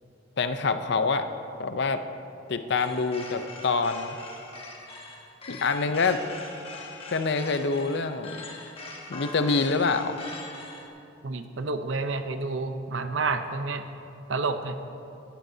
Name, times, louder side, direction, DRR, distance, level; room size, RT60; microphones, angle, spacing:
voice 1, 0.4-1.3 1.6-2.0 2.5-4.2 5.5-6.2 7.1-8.4 9.1-10.2, left 4 dB, 60° left, 9 dB, 0.6 m, -26 dB
sound 1, 2.8-10.9, left 3 dB, 30° left, 1.3 m, -42 dB
voice 2, 11.2-13.9 14.3-14.8, right 3 dB, 70° right, 8 dB, 0.7 m, -29 dB
16.5 x 14.0 x 2.7 m, 2.8 s
head